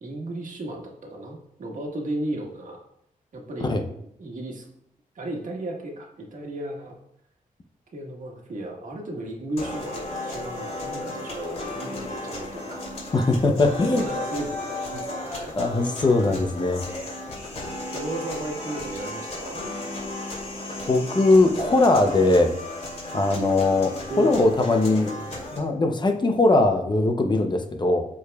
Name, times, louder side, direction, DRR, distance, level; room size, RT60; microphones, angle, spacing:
voice 1, 0.0-2.8 3.3-3.8 4.2-4.6 5.1-7.0 7.9-13.0 13.9-15.5 17.9-19.6 24.1-24.4, right 1 dB, 65° right, 0 dB, 1.5 m, -34 dB
sound 1, 9.6-25.6, left 1 dB, 50° left, 2.6 m, -34 dB
voice 2, 13.1-14.1 15.6-16.8 20.9-22.5 23.1-25.2 25.5-28.1, left 2 dB, 30° left, 5 dB, 0.6 m, -20 dB
13.0 x 4.8 x 2.3 m, 0.73 s
wide cardioid pair, 160°, 14 cm